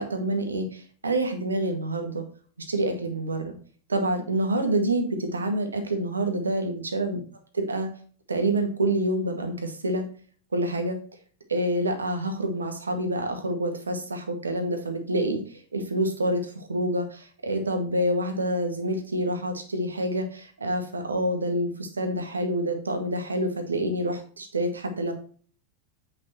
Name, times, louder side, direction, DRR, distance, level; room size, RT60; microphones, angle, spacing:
voice 1, 0.0-2.2 2.6-3.5 3.9-7.2 7.7-7.9 8.3-10.0 10.5-11.0 11.5-25.1, right 1 dB, 75° right, 4 dB, 1.8 m, -27 dB
8.8 x 5.4 x 4.4 m, 0.43 s
figure-of-eight pair, 90°, 0 cm